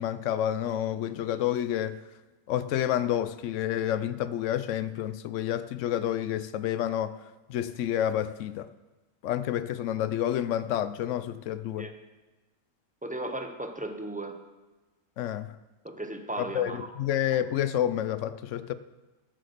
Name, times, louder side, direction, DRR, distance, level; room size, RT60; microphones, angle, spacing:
voice 1, 0.0-2.0 2.5-7.2 7.5-8.7 9.2-11.9 15.2-15.6 16.4-18.7, left 11 dB, 70° left, 0.8 m, -29 dB
voice 2, 13.0-14.4 15.8-16.9, right 1 dB, 10° right, 0.4 m, -36 dB
13.0 x 8.2 x 5.1 m
omnidirectional pair, 1.6 m